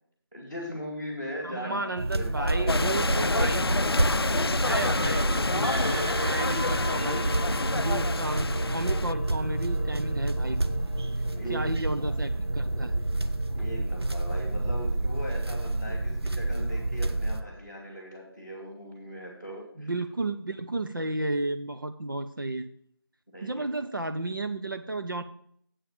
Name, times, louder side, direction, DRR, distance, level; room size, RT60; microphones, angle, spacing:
voice 1, 0.3-3.5 4.2-4.8 11.0-12.1 13.5-19.9 23.3-23.8, equal, 5° right, -7 dB, 1.5 m, -39 dB
voice 2, 1.4-3.8 4.6-7.3 7.7-10.6 11.5-12.9 19.8-22.7 23.4-25.2, right 2 dB, 55° right, 8 dB, 0.6 m, -33 dB
sound 1, 2.0-17.4, right 2 dB, 75° right, 1.0 m, -29 dB
sound 2, 2.7-9.1, left 3 dB, 70° left, 0.4 m, -29 dB
sound 3, 4.8-15.6, equal, 35° left, 0.9 m, -40 dB
8.3 x 5.8 x 7.1 m, 0.66 s
figure-of-eight pair, 170°, 13 cm